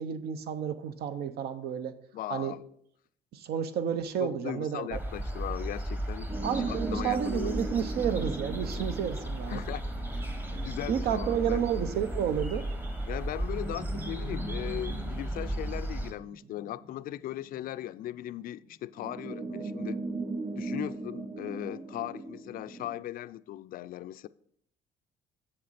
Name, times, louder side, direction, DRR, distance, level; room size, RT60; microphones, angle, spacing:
voice 1, 0.0-2.0 2.3-2.6 3.3-5.0 6.4-9.6 10.5-12.6, right 8 dB, 70° right, 0.8 m, -31 dB
voice 2, 2.1-2.6 4.2-7.5 9.5-9.8 10.1-11.6 13.1-20.0 20.5-24.3, left 13 dB, 60° left, 0.4 m, -38 dB
sound 1, 4.9-16.1, right 1 dB, 10° right, 1.0 m, -35 dB
sound 2, 6.3-18.1 18.9-23.0, right 3 dB, 35° right, 3.5 m, -39 dB
7.8 x 7.2 x 4.2 m
cardioid pair, 110°, 17 cm